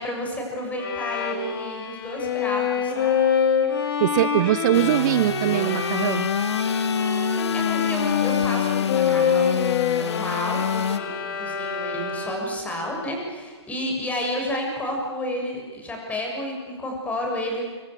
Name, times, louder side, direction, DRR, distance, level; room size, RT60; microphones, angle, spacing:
voice 1, 0.0-3.2 7.5-17.6, left 1 dB, 10° left, 0 dB, 7.0 m, -31 dB
Bowed string instrument, 0.8-12.6, left 7 dB, 50° left, 4.3 m, -26 dB
voice 2, 4.0-6.3, right 14 dB, 40° right, 15 dB, 0.7 m, -22 dB
Engine / Sawing, 4.7-11.0, left 7 dB, 70° left, 0.9 m, -26 dB
25.5 x 24.5 x 8.4 m, 1.4 s
hypercardioid pair, 135°, 15 cm